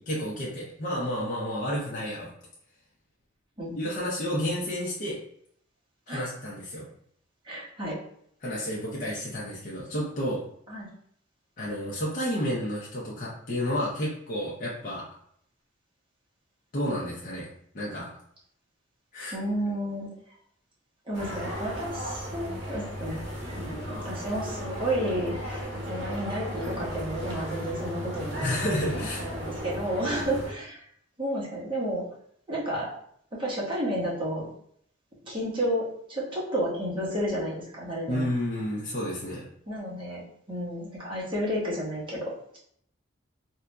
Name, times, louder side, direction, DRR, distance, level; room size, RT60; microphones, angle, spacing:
voice 1, 0.0-2.3 3.7-5.2 6.1-6.9 8.4-10.4 11.6-15.0 16.7-17.5 17.7-18.1 19.1-19.3 28.4-29.3 38.1-39.4, equal, 45° left, -6 dB, 0.7 m, -31 dB
voice 2, 7.5-8.0 10.7-10.9 19.3-20.1 21.1-23.2 23.5-28.6 29.2-30.8 31.2-32.0 32.5-32.9 33.3-34.5 35.2-38.2 39.7-40.2 40.5-42.6, equal, 25° right, -7 dB, 1.2 m, -31 dB
sound 1, 21.1-30.5, equal, 60° right, 0.9 m, -35 dB
3.7 x 2.7 x 2.2 m, 0.67 s
head